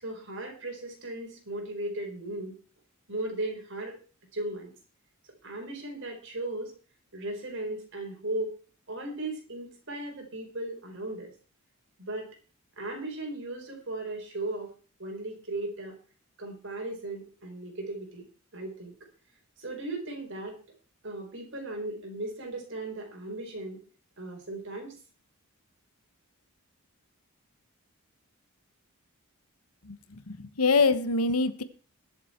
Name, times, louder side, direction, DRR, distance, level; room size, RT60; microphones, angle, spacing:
voice 1, 0.0-2.6 3.1-4.0 4.3-4.7 5.4-6.7 7.1-8.5 8.9-11.3 12.0-12.3 12.8-14.7 15.0-16.0 16.4-18.3 18.5-18.9 19.6-20.5 21.0-23.8 24.2-24.9, right 2 dB, 55° right, 4.6 m, -36 dB
voice 2, 29.8-31.6, left 4 dB, 85° left, 1.2 m, -25 dB
21.5 x 7.4 x 4.5 m
head